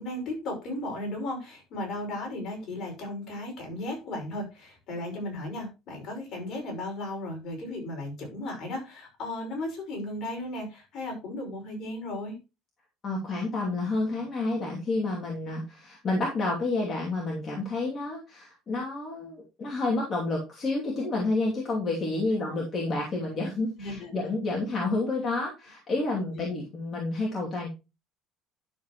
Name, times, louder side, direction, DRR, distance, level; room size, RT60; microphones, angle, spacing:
voice 1, 0.0-12.4 22.5-22.6 23.8-24.1 26.2-26.3, left 1 dB, 45° left, 1 dB, 5.4 m, -35 dB
voice 2, 13.0-27.7, left 2 dB, 30° left, -3 dB, 2.6 m, -29 dB
11.5 x 7.0 x 3.0 m, 0.27 s
cardioid pair, 145°, 0 cm